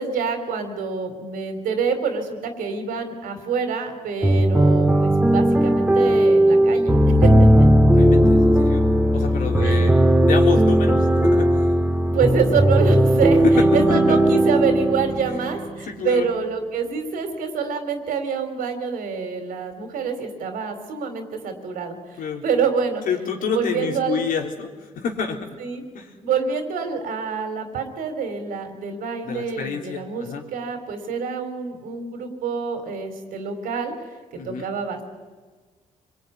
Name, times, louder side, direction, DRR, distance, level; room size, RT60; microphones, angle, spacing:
voice 1, 0.0-7.3 7.6-7.7 9.6-9.9 12.1-23.0 23.4-24.2 25.6-25.8 26.2-30.2 30.5-33.9 34.5-35.0, right 5 dB, 85° right, 7 dB, 4.1 m, -26 dB
sound 1, 4.2-15.9, right 1 dB, 10° right, 2.4 m, -17 dB
voice 2, 7.9-8.8 9.1-9.9 10.2-11.7 13.4-14.2 15.2-15.3 15.8-16.3 22.2-22.4 23.1-25.6 25.9-26.1 29.2-30.5 34.3-34.7, left 6 dB, 75° left, 2 dB, 4.0 m, -28 dB
25.5 x 22.0 x 9.6 m, 1.4 s
cardioid pair, 75°, 14 cm